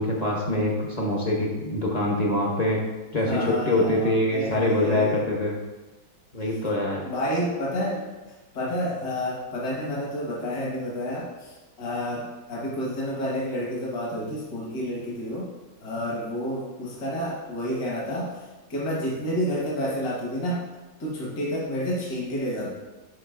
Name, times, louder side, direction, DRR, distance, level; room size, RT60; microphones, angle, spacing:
voice 1, 0.0-2.8 3.1-5.6 6.3-7.0, left 1 dB, 45° left, -2 dB, 0.5 m, -24 dB
voice 2, 3.1-5.2 7.0-8.0 8.5-15.5 15.8-18.4 18.7-20.6 21.0-22.7, equal, 70° left, -4 dB, 1.9 m, -29 dB
11.0 x 4.0 x 2.5 m, 1.1 s
omnidirectional pair, 2.0 m